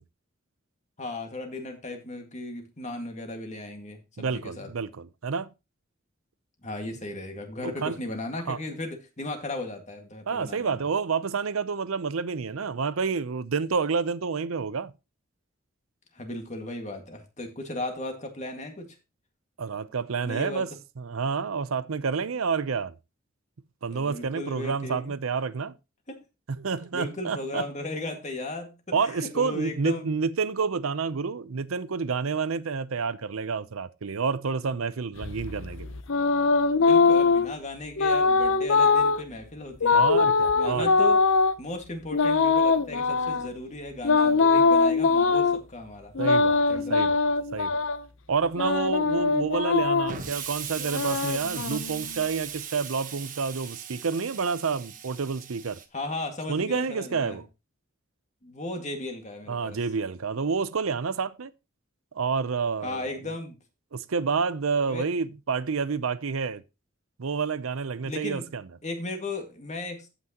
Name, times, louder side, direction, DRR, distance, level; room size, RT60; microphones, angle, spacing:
voice 1, 1.0-4.7 6.6-10.8 16.1-19.0 20.2-20.7 23.9-25.1 26.1-26.2 26.9-30.1 36.8-40.3 40.5-46.1 46.7-47.1 55.9-57.4 58.4-59.8 62.8-63.6 64.9-65.1 68.0-68.5 68.8-70.1, left 2 dB, 35° left, 1.9 m, -36 dB
voice 2, 4.2-5.5 7.6-8.0 8.5-8.6 10.3-14.9 19.6-20.7 21.0-22.9 23.8-25.7 26.5-27.6 28.9-35.9 39.9-40.9 46.2-47.9 48.3-55.8 56.5-57.5 59.5-61.5 62.1-63.3 63.9-66.6 67.2-68.6, right 5 dB, 90° right, 0.6 m, -29 dB
sound 1, 35.2-37.5 38.0-39.2 39.8-41.5 42.1-43.5 44.0-45.6 46.2-48.0 48.6-50.2 50.8-52.2, left 4 dB, 65° left, 0.7 m, -22 dB
Explosion, 50.1-55.9, right 8 dB, 40° right, 1.2 m, -38 dB
14.5 x 6.1 x 2.9 m
head